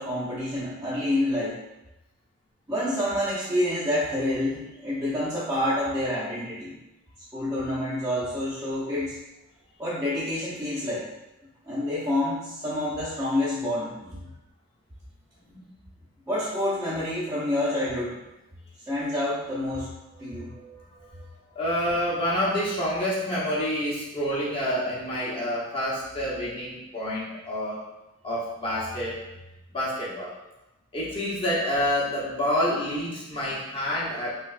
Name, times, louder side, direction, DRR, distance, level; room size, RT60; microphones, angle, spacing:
voice 1, 0.0-1.6 2.7-6.8 7.3-9.2 9.8-11.1 11.7-13.9 16.3-18.2 18.9-19.9 20.2-20.5, left 1 dB, 15° right, -11 dB, 0.5 m, -28 dB
voice 2, 20.3-21.2 21.5-27.8 28.2-29.2 29.7-30.3 30.9-34.3, equal, 25° left, -7 dB, 0.8 m, -28 dB
3.2 x 3.0 x 2.4 m, 0.97 s
head